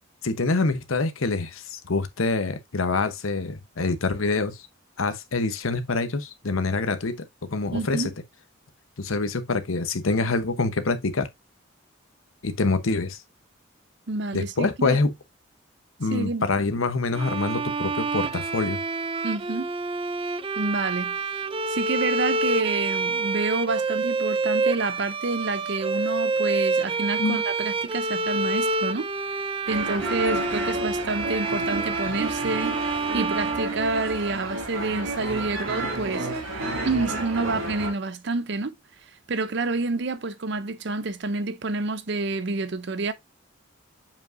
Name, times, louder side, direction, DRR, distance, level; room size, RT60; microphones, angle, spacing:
voice 1, 0.2-4.6 5.0-8.1 9.0-11.3 12.4-13.2 14.3-15.1 16.0-18.8 27.2-27.4, left 3 dB, 85° left, 1.0 m, -26 dB
voice 2, 7.7-8.1 14.1-15.0 16.1-16.4 19.2-19.7 20.6-21.1 21.7-29.1 29.7-36.3 36.6-38.7 39.0-43.1, right 3 dB, 55° right, 0.6 m, -28 dB
Bowed string instrument, 17.1-34.4, right 3 dB, 25° right, 0.3 m, -28 dB
sound 1, 29.7-37.9, right 2 dB, 85° right, 2.5 m, -31 dB
7.2 x 5.3 x 2.6 m
head